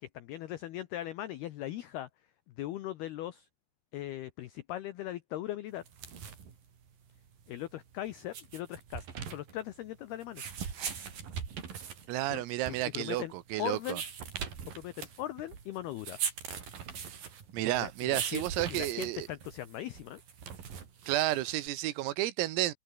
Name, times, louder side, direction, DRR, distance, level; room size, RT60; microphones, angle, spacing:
voice 1, 0.0-2.1 2.6-3.5 3.9-5.8 7.5-10.4 12.3-13.3 13.6-14.0 14.7-16.2 17.8-20.2, left 13 dB, 80° left, 2.2 m, -39 dB
sound 1, 5.8-21.7, right 7 dB, 45° right, 4.8 m, -41 dB
voice 2, 12.1-14.0 17.1-17.2 17.5-19.3 21.1-22.7, right 16 dB, 85° right, 4.1 m, -31 dB
omnidirectional pair, 6.0 m